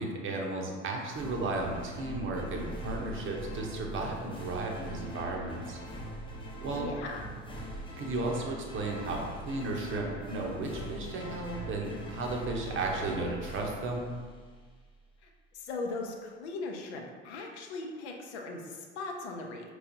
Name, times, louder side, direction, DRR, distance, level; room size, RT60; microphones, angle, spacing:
voice 1, 0.0-5.8 6.6-6.9 8.0-14.1, right 2 dB, 35° right, 0 dB, 0.8 m, -34 dB
sound 1, 1.1-14.8, right 1 dB, 15° left, 0.7 m, -42 dB
voice 2, 6.7-7.3 15.2-19.7, left 3 dB, 65° left, 2 dB, 0.7 m, -39 dB
4.7 x 3.1 x 2.6 m, 1.5 s
figure-of-eight pair, 60°, 35 cm